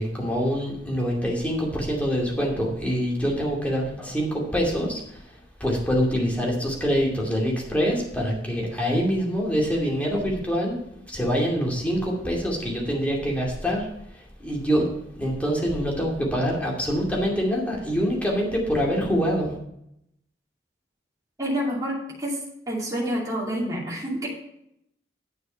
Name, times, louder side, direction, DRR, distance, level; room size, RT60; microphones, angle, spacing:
voice 1, 0.0-5.2 5.6-10.8 11.1-13.9 14.1-14.9 15.1-19.5, equal, 10° left, -2 dB, 2.5 m, -25 dB
voice 2, 21.4-22.4 22.7-24.3, equal, 20° right, -5 dB, 2.6 m, -28 dB
9.8 x 6.8 x 5.6 m, 0.77 s
head